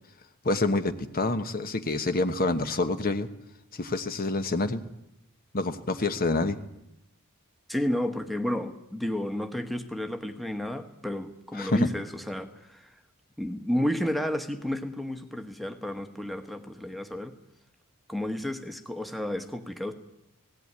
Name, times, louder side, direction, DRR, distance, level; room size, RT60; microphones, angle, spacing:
voice 1, 0.4-3.3 3.7-4.8 5.5-6.6 11.6-11.9, left 2 dB, 40° left, 9 dB, 1.1 m, -27 dB
voice 2, 7.7-12.9 13.4-17.3 18.1-19.9, left 1 dB, ahead, 6 dB, 1.2 m, -31 dB
17.5 x 17.0 x 9.7 m, 0.84 s
head